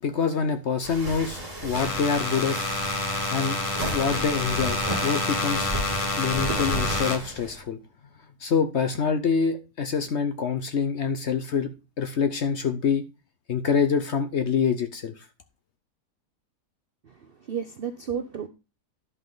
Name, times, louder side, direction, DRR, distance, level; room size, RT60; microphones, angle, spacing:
voice 1, 0.0-2.6 3.3-3.6 3.9-5.7 6.2-7.8 8.4-11.7 12.0-13.0 13.5-15.2, left 6 dB, 55° left, 0.9 m, -26 dB
sound 1, 0.8-7.6, right 1 dB, 25° right, 2.9 m, -35 dB
sound 2, 1.7-7.2, left 2 dB, 25° left, 1.0 m, -28 dB
voice 2, 17.0-18.5, right 7 dB, 60° right, 0.6 m, -33 dB
11.0 x 5.4 x 3.9 m
omnidirectional pair, 1.7 m